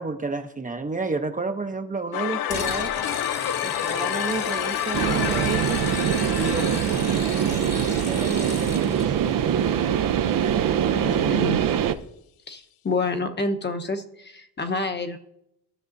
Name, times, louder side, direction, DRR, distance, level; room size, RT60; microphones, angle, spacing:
voice 1, 0.0-2.9 3.6-5.8 6.3-9.9 11.0-11.5, right 3 dB, 20° right, 6 dB, 0.7 m, -32 dB
sound 1, 2.1-9.0, left 11 dB, 75° left, 0.6 m, -30 dB
sound 2, 2.5-9.1, left 4 dB, 45° left, 1.4 m, -35 dB
sound 3, 4.9-12.0, right 9 dB, 65° right, 0.7 m, -23 dB
voice 2, 10.9-11.6 12.5-15.2, left 3 dB, 30° left, 6 dB, 1.0 m, -28 dB
15.0 x 6.1 x 2.6 m, 0.78 s
cardioid pair, 95°, 36 cm